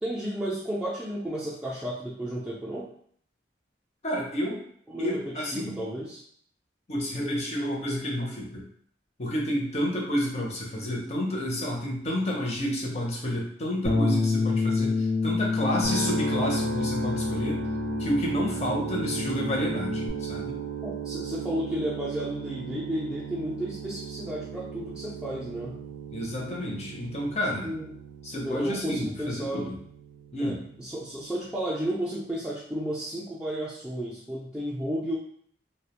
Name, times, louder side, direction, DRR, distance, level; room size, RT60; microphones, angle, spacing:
voice 1, 0.0-2.9 4.9-6.2 20.8-25.8 27.6-27.9 28.4-29.7 30.4-35.2, equal, 5° right, -8 dB, 0.3 m, -33 dB
voice 2, 4.0-4.6 5.0-5.8 6.9-8.6 9.2-17.6 18.0-20.6 26.1-27.7 28.2-29.7 30.3-30.6, equal, 40° left, -1 dB, 0.6 m, -30 dB
Bass guitar, 13.8-20.1, left 4 dB, 75° left, 0.8 m, -28 dB
sound 1, 15.8-31.8, right 7 dB, 85° right, 0.4 m, -37 dB
2.3 x 2.1 x 2.8 m, 0.62 s
head